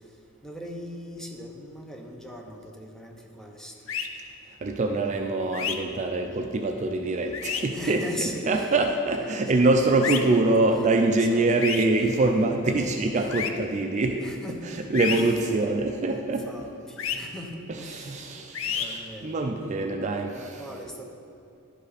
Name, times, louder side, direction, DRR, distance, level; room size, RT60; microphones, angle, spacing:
voice 1, 0.4-3.7 4.8-5.1 7.7-8.7 9.0-10.4 11.0-11.6 11.9-12.3 13.1-13.4 14.2-15.4 16.0-21.0, equal, ahead, 2 dB, 0.7 m, -41 dB
sound 1, 3.9-4.1 5.5-5.8 7.3-7.6 10.0-10.2 11.6-11.8 13.3-13.5 14.9-15.2 17.0-17.2 18.5-18.9, left 8 dB, 70° left, 0.6 m, -29 dB
voice 2, 4.6-14.2 14.6-16.5 17.9-20.5, right 2 dB, 35° right, 4 dB, 0.4 m, -24 dB
11.5 x 5.4 x 4.1 m, 2.7 s
head